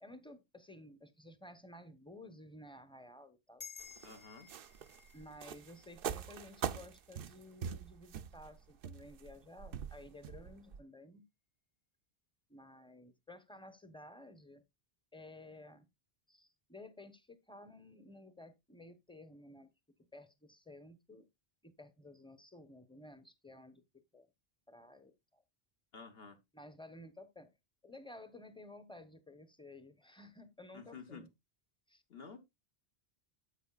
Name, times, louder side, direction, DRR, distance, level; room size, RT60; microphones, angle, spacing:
voice 1, 0.0-3.7 5.1-11.2 12.5-14.6 15.1-15.9 16.3-19.7 20.1-21.3 21.6-23.8 24.1-24.3 24.7-25.4 26.5-27.6 27.8-31.3 31.9-32.0, left 1 dB, 5° left, 0.9 m, -54 dB
sound 1, 3.6-8.3, left 6 dB, 40° left, 0.9 m, -56 dB
sound 2, 3.8-10.8, right 8 dB, 65° right, 0.7 m, -43 dB
voice 2, 4.0-4.5 25.9-26.4 30.7-31.2 32.1-32.4, left 5 dB, 65° left, 1.4 m, -51 dB
10.0 x 8.0 x 2.4 m
omnidirectional pair, 1.1 m